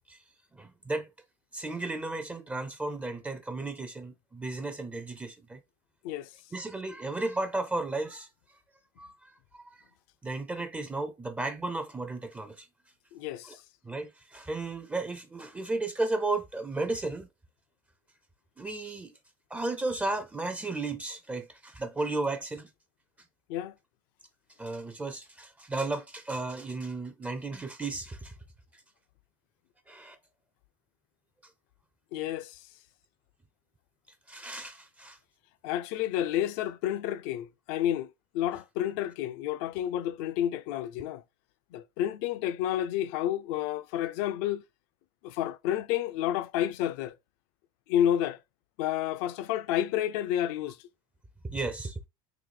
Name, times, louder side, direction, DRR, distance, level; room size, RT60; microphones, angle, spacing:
voice 1, 0.5-1.1 1.5-5.6 6.5-8.3 9.0-9.6 10.2-12.7 13.5-13.6 13.8-17.3 18.6-19.1 19.5-22.7 24.6-28.3 29.9-30.2 34.3-35.2 51.4-52.0, right 2 dB, 10° right, 0.4 m, -34 dB
voice 2, 13.1-13.6 23.5-23.7 32.1-32.6 35.6-41.2 41.7-44.6 45.2-47.2 47.9-48.4 48.8-50.8, left 11 dB, 65° left, 0.4 m, -30 dB
3.9 x 2.7 x 3.2 m
supercardioid pair, 135°, 13 cm